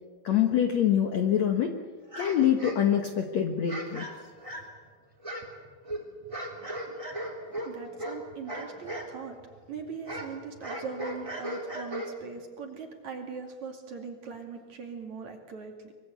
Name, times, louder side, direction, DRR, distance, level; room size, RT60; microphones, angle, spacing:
voice 1, 0.2-1.7 2.2-4.1 8.0-8.1, left 9 dB, 60° left, 4 dB, 1.9 m, -25 dB
sound 1, 2.1-3.2 3.7-4.8 5.2-9.1 9.4-12.4, right 1 dB, 10° right, 3.0 m, -38 dB
voice 2, 7.7-9.4 9.7-15.9, right 5 dB, 50° right, 3 dB, 3.6 m, -40 dB
24.5 x 23.5 x 8.1 m, 1.5 s
omnidirectional pair, 4.6 m